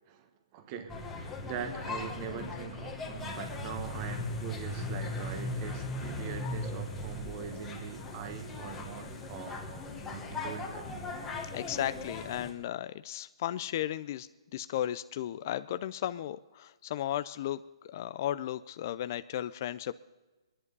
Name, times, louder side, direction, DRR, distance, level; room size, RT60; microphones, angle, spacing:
voice 1, 0.1-9.8 10.1-10.9, right 7 dB, 25° right, 8 dB, 1.2 m, -42 dB
sound 1, 0.9-12.5, left 2 dB, 10° left, 1.4 m, -38 dB
voice 2, 11.5-19.9, left 12 dB, 35° left, 14 dB, 0.4 m, -35 dB
21.0 x 11.0 x 5.4 m, 1.2 s
hypercardioid pair, 165°, 3 cm